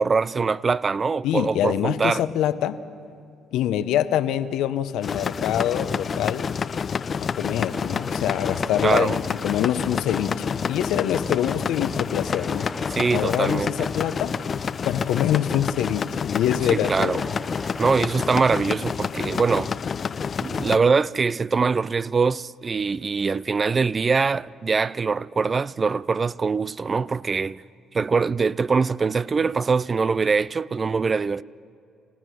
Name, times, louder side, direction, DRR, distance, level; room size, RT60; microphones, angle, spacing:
voice 1, 0.0-2.2 8.8-9.2 12.9-13.9 16.7-17.2 17.8-19.7 20.4-27.6 27.9-31.4, right 4 dB, 35° right, 0.4 m, -23 dB
voice 2, 1.2-2.8 3.5-6.5 7.3-14.3 14.8-17.3, left 11 dB, 80° left, 0.8 m, -25 dB
sound 1, 5.0-20.8, left 6 dB, 50° left, 0.5 m, -28 dB
sound 2, 7.6-10.6 12.0-15.4 16.5-18.3, equal, ahead, 0.7 m, -41 dB
27.0 x 16.0 x 6.3 m
supercardioid pair, 65°, 0 cm